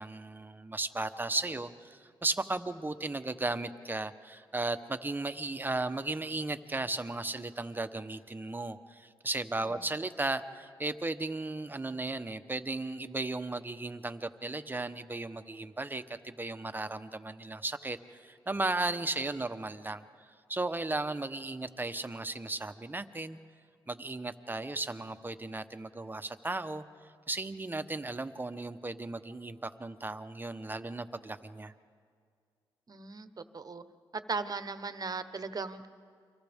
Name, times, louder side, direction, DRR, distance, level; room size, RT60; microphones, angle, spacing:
voice 1, 0.0-20.0 20.5-23.4 23.9-26.8 27.3-31.7, right 2 dB, 20° right, 9 dB, 1.0 m, -35 dB
voice 2, 32.9-33.8 34.1-35.9, right 4 dB, 45° right, 10 dB, 1.1 m, -37 dB
30.0 x 25.0 x 3.6 m, 2.1 s
cardioid pair, 60°, 9 cm